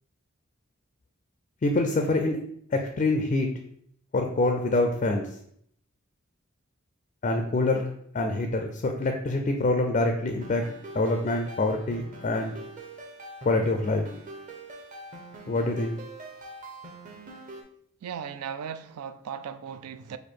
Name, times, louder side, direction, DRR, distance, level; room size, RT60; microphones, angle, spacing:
voice 1, 1.6-2.4 2.7-3.5 4.1-5.3 7.2-10.6 10.9-12.6 13.5-14.0 15.5-16.0, left 2 dB, 35° left, 0.3 m, -25 dB
sound 1, 10.3-17.6, right 2 dB, 35° right, 0.7 m, -44 dB
voice 2, 18.0-20.2, right 7 dB, 90° right, 0.4 m, -37 dB
4.3 x 2.6 x 4.4 m
head